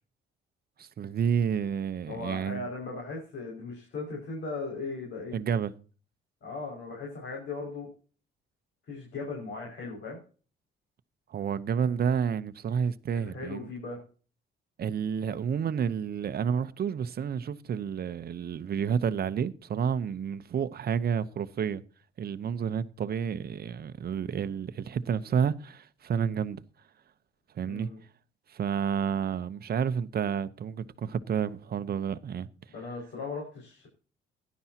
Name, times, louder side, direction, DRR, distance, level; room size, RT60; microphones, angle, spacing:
voice 1, 0.8-2.6 5.3-5.7 11.3-13.7 14.8-21.8 22.2-26.6 27.5-27.9 28.5-32.5, right 7 dB, 50° right, 0.9 m, -30 dB
voice 2, 2.1-5.3 6.4-7.9 8.9-10.2 13.1-14.0 27.6-28.0 32.7-33.9, left 3 dB, 65° left, 6.1 m, -38 dB
16.5 x 11.5 x 2.9 m
cardioid pair, 90°, 20 cm